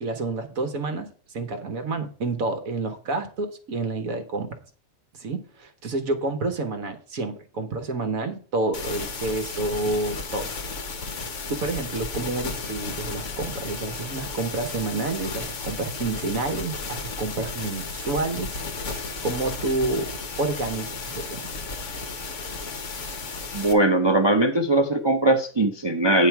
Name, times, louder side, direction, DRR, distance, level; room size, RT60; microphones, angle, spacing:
voice 1, 0.0-1.1 1.3-4.5 5.2-10.5 11.5-18.6 18.9-20.1 20.4-21.4, right 3 dB, 60° right, 8 dB, 1.5 m, -29 dB
sound 1, 8.7-23.7, left 4 dB, 55° left, 1.3 m, -34 dB
voice 2, 23.5-26.3, right 1 dB, 45° right, 4 dB, 0.3 m, -20 dB
9.4 x 5.6 x 4.6 m, 0.41 s
omnidirectional pair, 1.7 m